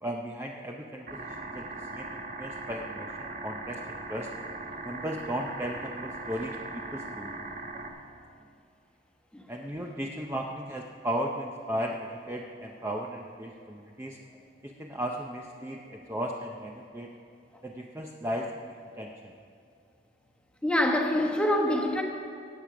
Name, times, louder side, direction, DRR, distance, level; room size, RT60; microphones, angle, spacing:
voice 1, 0.0-4.3 4.8-7.3 9.5-14.2 14.6-17.1 17.6-19.3, equal, 15° right, 0 dB, 0.6 m, -36 dB
sound 1, 1.1-7.9, right 3 dB, 45° right, 1.2 m, -39 dB
voice 2, 20.6-22.0, left 1 dB, 5° left, 2 dB, 1.1 m, -25 dB
16.5 x 8.6 x 6.0 m, 2.5 s
head